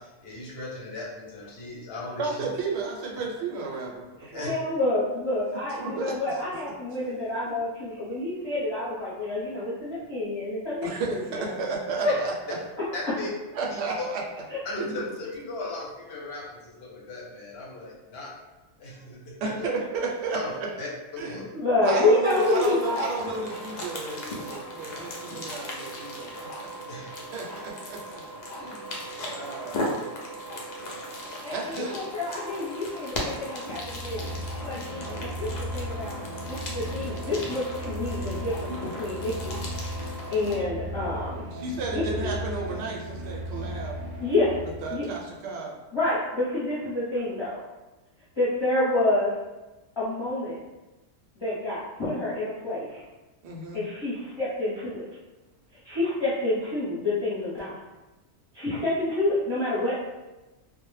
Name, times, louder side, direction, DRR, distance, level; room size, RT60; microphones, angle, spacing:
voice 1, 0.0-2.4 4.3-4.5 12.9-13.3 13.7-14.1 14.6-18.3 18.8-19.5 20.3-20.5 20.8-21.4 26.9-27.1, left 2 dB, 60° left, -3 dB, 0.8 m, -37 dB
voice 2, 2.2-4.5 5.8-6.2 10.8-12.3 13.5-14.2 14.8-15.0 19.4-20.7 21.2-21.4 21.8-26.8 27.3-28.2 28.5-29.9 31.5-32.0 38.7-38.8 41.5-44.0 44.8-45.7 53.4-53.8, right 3 dB, 65° right, -2 dB, 0.8 m, -33 dB
voice 3, 4.2-11.5 12.0-12.1 14.5-14.6 21.6-23.1 31.4-34.2 34.6-36.2 36.4-38.7 39.0-39.6 40.3-41.5 44.2-44.5 44.9-45.0 45.9-47.6 48.4-49.4 50.0-50.6 51.3-53.0 53.7-55.0 55.8-57.7 58.5-60.0, left 2 dB, 30° left, -11 dB, 0.6 m, -28 dB
sound 1, 22.2-40.5, left 1 dB, 90° left, 0.3 m, -37 dB
sound 2, 33.6-45.2, equal, 30° right, 0.6 m, -36 dB
2.1 x 2.0 x 3.1 m, 1.1 s
omnidirectional pair, 1.3 m